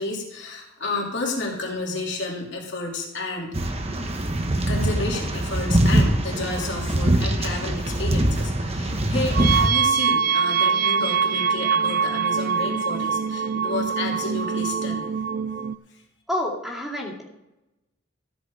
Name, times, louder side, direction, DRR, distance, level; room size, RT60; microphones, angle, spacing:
voice 1, 0.0-3.5 4.5-15.1, left 2 dB, 60° left, -1 dB, 3.0 m, -31 dB
sound 1, 3.5-9.7, right 1 dB, 30° right, 1.1 m, -23 dB
sound 2, 9.3-15.8, right 6 dB, 45° right, 0.4 m, -23 dB
voice 2, 16.3-17.3, left 1 dB, ahead, -3 dB, 2.4 m, -28 dB
14.0 x 7.9 x 4.9 m, 0.93 s
head